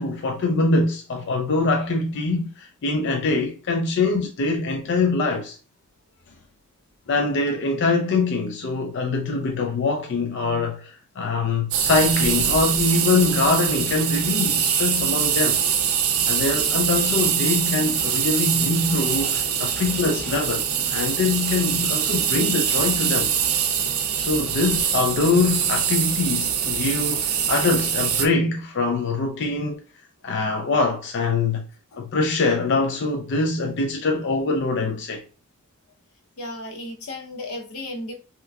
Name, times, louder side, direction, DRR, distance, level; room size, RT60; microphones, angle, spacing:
voice 1, 0.0-5.6 7.1-15.6 16.3-23.3 24.2-29.8 30.2-31.7 32.0-35.2, left 3 dB, 55° left, 0.4 m, -23 dB
sound 1, 11.7-28.3, right 8 dB, 65° right, 0.5 m, -23 dB
voice 2, 36.4-38.1, left 1 dB, 80° left, 0.8 m, -34 dB
3.4 x 2.9 x 2.3 m
head